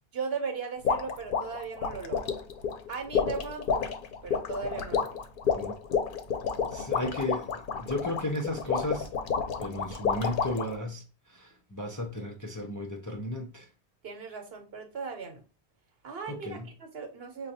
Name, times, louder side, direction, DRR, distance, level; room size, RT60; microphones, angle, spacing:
voice 1, 0.1-2.3 2.9-3.9 4.2-5.2 14.0-15.4 16.0-17.5, right 5 dB, 75° right, 1.1 m, -37 dB
sound 1, 0.8-10.7, left 6 dB, 65° left, 0.7 m, -30 dB
voice 2, 6.7-9.1 9.6-13.7 16.3-16.7, left 1 dB, 25° left, 0.4 m, -34 dB
5.1 x 2.3 x 2.7 m
omnidirectional pair, 1.0 m